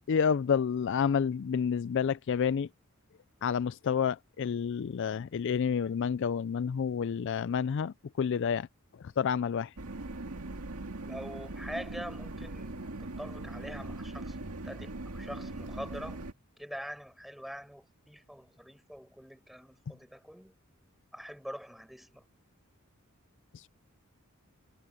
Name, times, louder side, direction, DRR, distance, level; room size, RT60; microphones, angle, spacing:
voice 1, 0.1-2.7 3.4-8.7 9.2-9.7 23.5-23.7, left 7 dB, 55° left, 0.4 m, -29 dB
sound 1, 9.8-16.3, right 2 dB, 80° right, 2.1 m, -40 dB
voice 2, 11.0-16.3 16.6-20.5 21.1-22.2, equal, ahead, 7.5 m, -44 dB
head